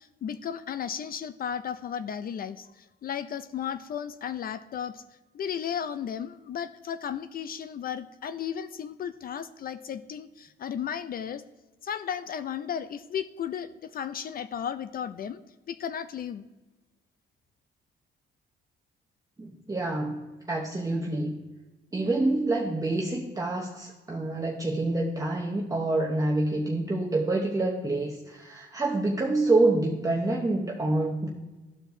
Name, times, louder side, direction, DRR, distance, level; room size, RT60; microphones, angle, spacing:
voice 1, 0.0-5.0 5.3-11.4 11.8-15.4 15.7-16.5, left 8 dB, 50° left, 12 dB, 0.4 m, -34 dB
voice 2, 19.4-21.4 21.9-31.3, right 2 dB, 15° right, -1 dB, 0.8 m, -27 dB
13.0 x 4.5 x 2.6 m, 1.2 s
cardioid pair, 90°, 20 cm